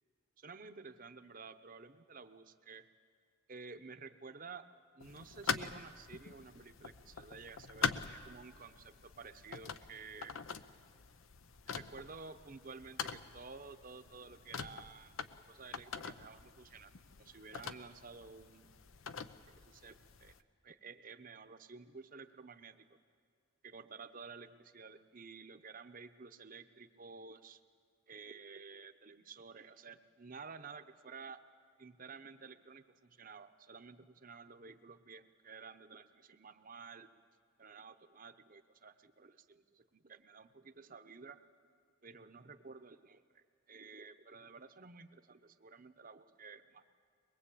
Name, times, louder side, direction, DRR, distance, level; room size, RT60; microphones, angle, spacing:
voice 1, 0.4-2.9 3.5-4.7 4.9-10.4 11.7-15.1 15.5-16.9 17.2-18.7 19.5-20.3 20.6-22.8 23.6-27.6 28.1-31.4 31.8-37.1 37.6-41.4 42.0-46.9, right 4 dB, 40° right, 10 dB, 0.9 m, -52 dB
sound 1, 5.0-20.4, left 6 dB, 75° left, 0.8 m, -44 dB
22.0 x 21.5 x 8.5 m, 2.1 s
head